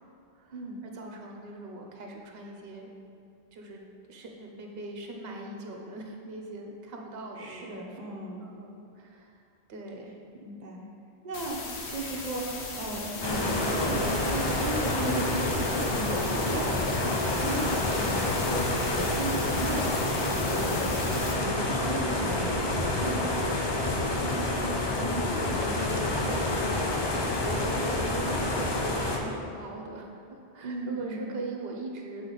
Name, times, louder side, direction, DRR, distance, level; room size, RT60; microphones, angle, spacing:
voice 1, 0.3-2.9 3.5-3.8 4.1-8.0 8.4-9.4 9.7-10.1 24.2-32.3, right 2 dB, 65° right, 1 dB, 1.0 m, -40 dB
voice 2, 7.4-8.4 10.4-10.8 11.2-11.6 11.9-19.9 20.3-23.4 30.6-31.3, right 2 dB, 40° right, -2 dB, 1.0 m, -35 dB
sound 1, 11.3-21.3, left 3 dB, 70° left, 1.1 m, -38 dB
sound 2, 13.2-29.2, left 2 dB, 30° left, 0.5 m, -28 dB
7.8 x 4.4 x 3.9 m, 2.5 s
omnidirectional pair, 1.1 m